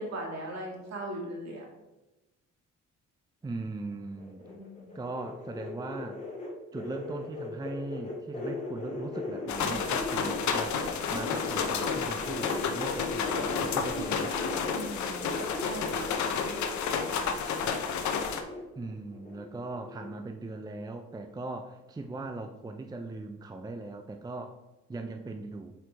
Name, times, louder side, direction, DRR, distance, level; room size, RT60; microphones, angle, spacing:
voice 1, 0.0-1.7 4.4-5.0 14.7-17.4, right 1 dB, 60° right, 0 dB, 2.1 m, -40 dB
voice 2, 3.4-4.4 4.9-6.2 6.7-14.4 18.8-24.6 24.9-25.7, right 2 dB, 15° right, 5 dB, 0.5 m, -39 dB
sound 1, 4.2-10.9 11.1-20.1 20.4-20.9 21.2-21.3, left 2 dB, 25° left, 2.1 m, -39 dB
sound 2, 9.5-18.4, left 6 dB, 70° left, 0.8 m, -31 dB
7.5 x 5.0 x 3.4 m, 1.0 s
cardioid pair, 90°, 30 cm